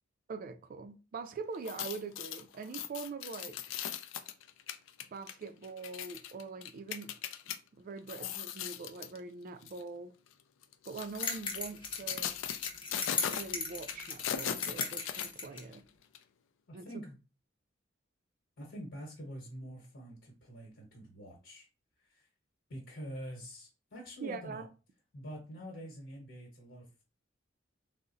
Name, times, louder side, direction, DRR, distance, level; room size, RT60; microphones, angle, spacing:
voice 1, 0.3-3.6 5.1-7.1 7.8-10.1 10.9-12.3 13.3-15.8 16.7-16.9 24.2-24.7, right 4 dB, 45° right, 0.3 m, -43 dB
sound 1, 1.5-7.6 8.0-9.2 9.6-9.8 10.6-15.8 16.1-16.2, left 9 dB, 90° left, 0.3 m, -39 dB
sound 2, 11.2-15.6, left 4 dB, 25° left, 0.6 m, -37 dB
voice 2, 16.7-17.2 18.6-21.7 22.0-22.3 22.7-24.7 25.1-27.1, equal, 70° left, 1.0 m, -46 dB
3.7 x 2.0 x 2.5 m
head